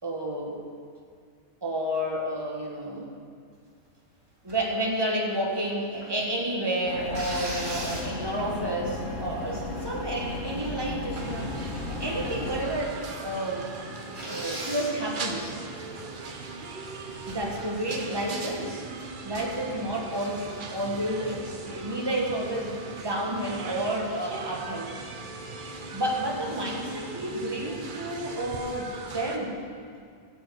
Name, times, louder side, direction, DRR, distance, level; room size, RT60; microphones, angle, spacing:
voice 1, 0.0-0.6 1.6-3.1 4.4-13.7 14.2-15.5 17.3-18.8 19.2-24.9 25.9-29.6, right 1 dB, 20° right, -1 dB, 1.4 m, -30 dB
sound 1, 4.5-4.7 5.3-6.1 7.1-8.4 9.1-9.2 9.5-9.9 10.2-11.1 11.6-11.9 12.2-12.3 12.9-13.0 13.3-13.4 14.1-14.9 17.3-17.6, right 1 dB, 70° right, 2.8 m, -38 dB
sound 2, 6.9-12.7, left 3 dB, 80° left, 1.7 m, -35 dB
sound 3, 11.2-29.4, right 3 dB, 45° right, 0.9 m, -39 dB
13.5 x 4.5 x 8.2 m, 2.2 s
omnidirectional pair, 1.3 m